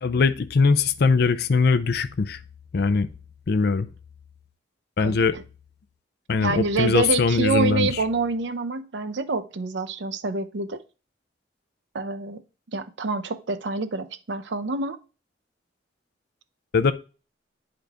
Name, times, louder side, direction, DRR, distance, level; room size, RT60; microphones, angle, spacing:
voice 1, 0.0-2.4 2.7-3.1 3.5-3.9 5.0-5.3 6.3-7.9 16.7-16.9, left 4 dB, 60° left, 0.5 m, -21 dB
voice 2, 5.0-5.4 6.4-10.8 11.9-12.4 12.7-15.0, right 3 dB, 70° right, 0.6 m, -27 dB
9.4 x 3.8 x 3.4 m
head